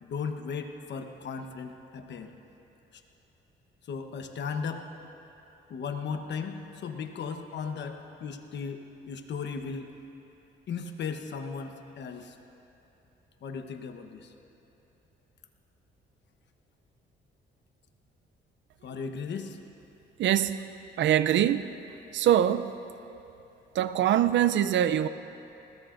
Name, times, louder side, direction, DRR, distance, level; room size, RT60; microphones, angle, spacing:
voice 1, 0.0-2.3 2.9-3.0 3.9-4.9 5.7-9.9 10.7-12.4 13.4-14.3 18.8-19.6, left 5 dB, 60° left, 6 dB, 1.1 m, -36 dB
voice 2, 20.2-20.6 21.0-21.6 22.1-22.7 23.8-25.1, right 11 dB, 70° right, 12 dB, 0.5 m, -23 dB
20.5 x 19.5 x 2.6 m, 3.0 s
cardioid pair, 90°, 20 cm